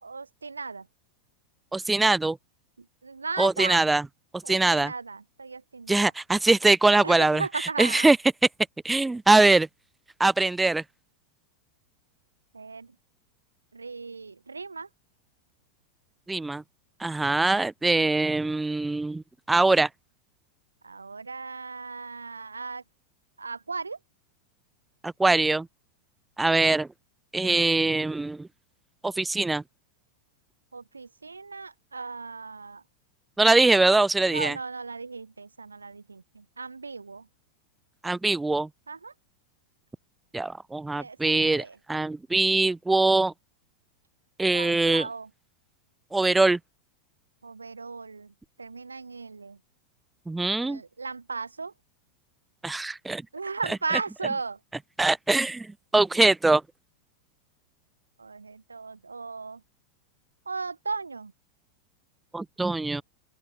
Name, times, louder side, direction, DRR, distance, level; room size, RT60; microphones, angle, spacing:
voice 1, 0.0-0.9 3.0-3.8 4.4-6.0 7.0-8.1 12.5-12.9 13.7-14.9 20.8-22.8 23.4-24.0 27.4-27.7 30.7-32.8 34.2-37.3 38.9-39.1 40.9-41.8 44.5-45.3 47.4-48.3 48.6-49.6 50.6-51.7 53.3-54.6 58.2-59.6 60.5-61.3, right 4 dB, 75° right, 4.1 m, -36 dB
voice 2, 1.7-2.4 3.4-4.0 4.5-4.9 5.9-8.2 8.8-9.7 10.2-10.8 16.3-16.6 17.0-19.2 19.5-19.9 25.0-25.7 26.4-26.9 27.3-28.5 29.0-29.6 33.4-34.6 38.0-38.7 40.3-43.3 44.4-45.1 46.1-46.6 50.3-50.8 52.6-53.2 53.7-53.8 55.0-56.6 62.3-63.0, right 2 dB, 10° right, 1.8 m, -22 dB
open air
figure-of-eight pair, 90°, 0 cm